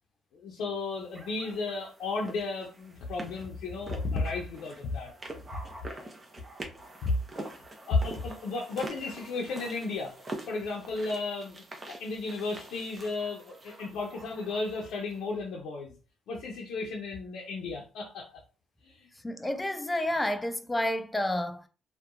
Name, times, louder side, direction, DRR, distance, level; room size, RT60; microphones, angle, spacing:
voice 1, 0.3-5.1 5.8-6.1 7.9-10.1 10.5-11.6 11.9-15.9 16.3-18.3 18.8-19.1, left 3 dB, 80° left, 0.5 m, -34 dB
sound 1, 1.1-15.2, right 2 dB, 25° right, 0.7 m, -45 dB
voice 2, 19.2-21.7, left 1 dB, 10° left, 0.3 m, -30 dB
2.7 x 2.2 x 2.4 m
cardioid pair, 90°, 0 cm